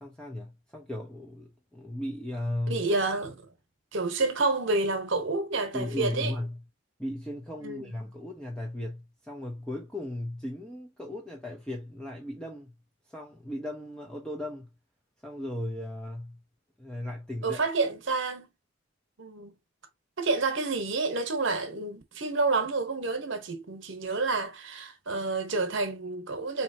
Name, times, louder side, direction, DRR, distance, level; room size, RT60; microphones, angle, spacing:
voice 1, 0.0-2.8 5.7-6.6 7.0-12.7 13.0-14.7 15.2-16.4 16.8-17.6, left 1 dB, 5° left, 0.4 m, -36 dB
voice 2, 2.7-3.4 3.9-6.3 7.6-7.9 17.4-18.5 19.2-19.5 20.2-26.6, right 3 dB, 60° right, 0.9 m, -29 dB
4.1 x 3.0 x 2.7 m
head